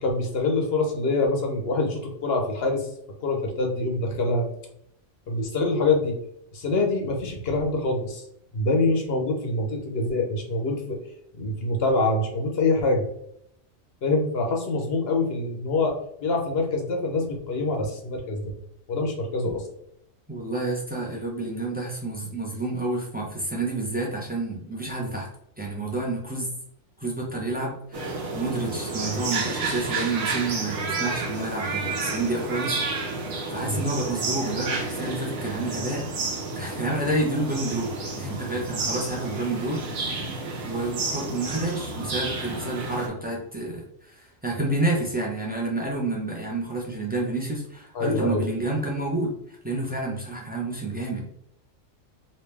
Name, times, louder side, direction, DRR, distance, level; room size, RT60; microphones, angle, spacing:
voice 1, 0.0-2.9 3.2-4.5 5.3-6.1 6.5-8.2 8.5-11.0 11.4-13.0 14.0-15.9 16.2-18.5 18.9-19.7 29.0-29.2 33.6-33.8 47.9-48.4, left 2 dB, 55° left, 2 dB, 0.9 m, -25 dB
voice 2, 20.3-25.3 25.6-26.5 27.0-32.8 33.2-36.1 36.5-40.2 40.6-51.3, right 2 dB, 10° right, -3 dB, 0.5 m, -29 dB
sound 1, 27.9-43.1, right 3 dB, 80° right, 1.2 m, -31 dB
3.2 x 2.7 x 3.3 m, 0.73 s
omnidirectional pair, 1.4 m